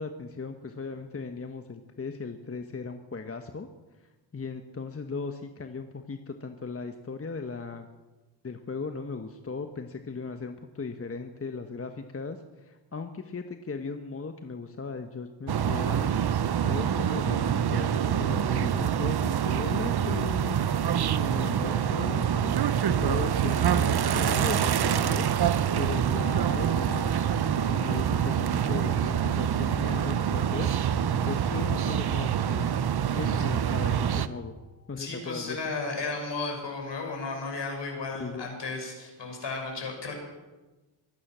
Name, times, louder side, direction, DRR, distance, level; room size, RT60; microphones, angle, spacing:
voice 1, 0.0-3.7 4.0-7.9 8.4-16.1 16.6-20.6 21.2-22.5 23.0-25.3 25.8-27.1 27.6-30.7 31.1-32.7 33.2-34.5 34.9-35.8 38.1-38.5, left 4 dB, 30° left, 6 dB, 1.2 m, -37 dB
sound 1, 15.5-34.3, right 9 dB, 50° right, 0.9 m, -26 dB
sound 2, 26.1-35.9 36.1-36.2, left 3 dB, 35° right, 6.3 m, -48 dB
voice 2, 35.0-40.2, left 3 dB, 60° left, 2 dB, 6.4 m, -34 dB
23.5 x 9.8 x 6.2 m, 1.2 s
cardioid pair, 60°, 48 cm